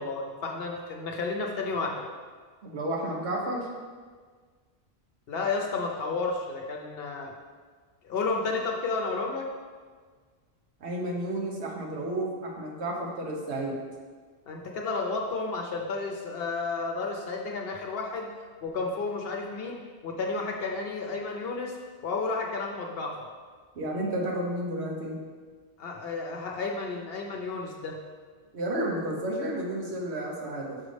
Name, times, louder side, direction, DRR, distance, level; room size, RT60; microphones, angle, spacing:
voice 1, 0.0-2.0 5.3-7.3 8.0-9.5 14.5-18.3 18.6-21.8 22.0-23.3 25.8-28.0, left 3 dB, 65° left, 1 dB, 0.9 m, -32 dB
voice 2, 2.6-3.7 10.8-13.8 23.7-25.2 28.5-30.8, right 1 dB, 85° right, -1 dB, 1.3 m, -31 dB
6.0 x 5.1 x 3.3 m, 1.5 s
omnidirectional pair, 1.1 m